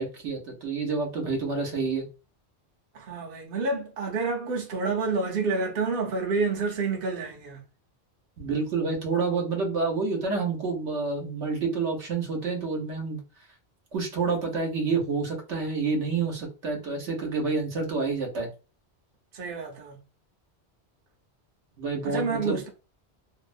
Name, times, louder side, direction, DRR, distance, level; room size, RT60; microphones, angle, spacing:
voice 1, 0.0-2.0 8.4-13.2 13.9-18.5 21.8-22.7, right 4 dB, 85° right, 1.1 m, -28 dB
voice 2, 2.9-7.6 19.3-20.0 22.0-22.7, right 4 dB, 60° right, 0.8 m, -29 dB
2.6 x 2.0 x 2.5 m
omnidirectional pair, 1.1 m